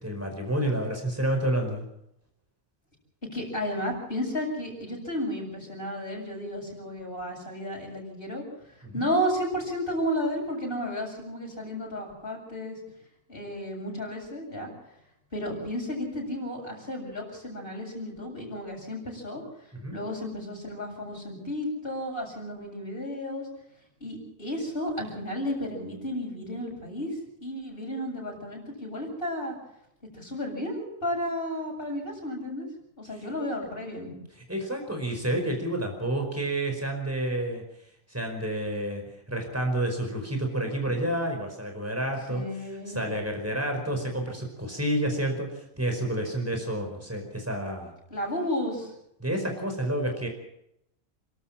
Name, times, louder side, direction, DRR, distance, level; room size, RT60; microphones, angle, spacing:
voice 1, 0.0-1.8 8.8-9.0 19.7-19.9 34.5-37.6 38.1-39.0 39.3-42.4 42.9-47.9 49.2-50.3, right 1 dB, 10° right, 3 dB, 5.0 m, -29 dB
voice 2, 3.3-8.4 8.9-12.8 13.3-14.7 15.3-19.4 19.9-23.5 24.0-29.6 30.1-32.7 33.0-34.1 42.3-43.0 48.1-48.9, equal, 45° left, -1 dB, 7.7 m, -33 dB
29.0 x 12.5 x 7.5 m, 0.80 s
omnidirectional pair, 1.4 m